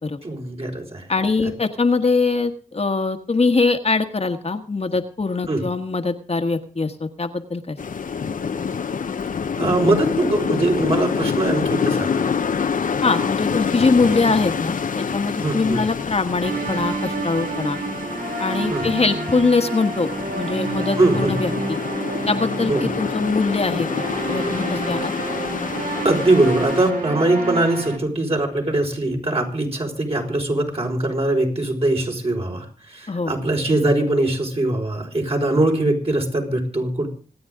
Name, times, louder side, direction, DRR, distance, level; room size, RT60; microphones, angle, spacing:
voice 1, 0.2-1.1 5.5-5.6 9.6-12.2 15.4-15.8 18.7-18.9 21.0-21.4 22.7-22.9 26.0-37.1, right 2 dB, 45° right, 1 dB, 5.0 m, -21 dB
voice 2, 1.1-7.8 13.0-17.8 18.4-21.8 22.3-25.1 33.1-33.3, left 3 dB, 45° left, 5 dB, 1.5 m, -22 dB
sound 1, 7.8-26.9, left 6 dB, 75° left, 0.9 m, -27 dB
sound 2, 16.4-28.0, right 2 dB, 75° right, 2.2 m, -29 dB
26.0 x 9.4 x 3.8 m, 0.39 s
cardioid pair, 50°, 14 cm